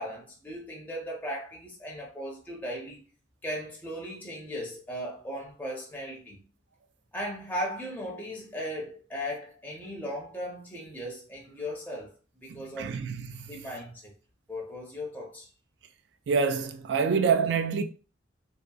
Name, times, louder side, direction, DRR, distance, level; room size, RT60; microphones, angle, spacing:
voice 1, 0.0-3.1 3.4-6.4 7.1-12.1 12.4-13.0 13.5-14.1 14.5-15.5, equal, 10° left, 0.5 m, -37 dB
voice 2, 12.5-13.5 16.3-17.8, right 5 dB, 65° right, 0.3 m, -27 dB
2.7 x 2.5 x 2.3 m
head